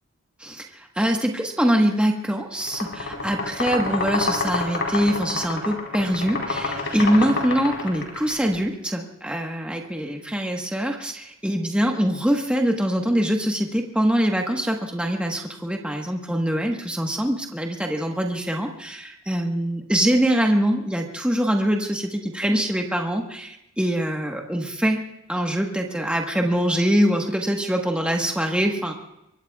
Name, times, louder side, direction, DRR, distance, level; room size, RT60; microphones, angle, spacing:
voice 1, 0.4-25.0 25.3-28.9, equal, 5° right, 1 dB, 1.3 m, -23 dB
sound 1, 2.6-8.3, left 3 dB, 55° left, 4.3 m, -28 dB
24.0 x 22.5 x 2.4 m, 0.85 s
head